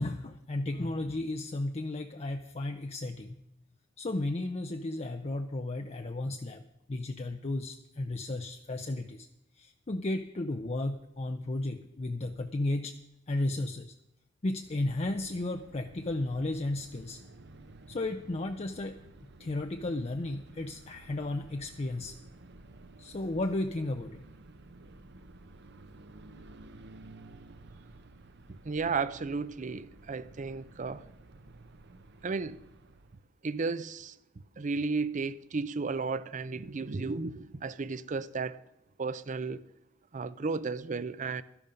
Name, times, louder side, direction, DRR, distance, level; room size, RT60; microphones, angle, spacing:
voice 1, 0.0-3.3 4.0-6.6 6.9-9.3 9.6-12.9 13.3-13.9 14.4-17.2 17.9-19.0 19.4-22.2 23.0-24.2, left 2 dB, 35° left, 0.6 m, -34 dB
sound 1, 14.6-33.3, right 2 dB, 60° right, 0.9 m, -53 dB
voice 2, 28.5-31.1 32.2-32.6 33.4-34.2 34.6-38.6 39.0-39.6 40.1-41.4, right 4 dB, 40° right, 0.5 m, -33 dB
12.5 x 11.0 x 5.2 m
head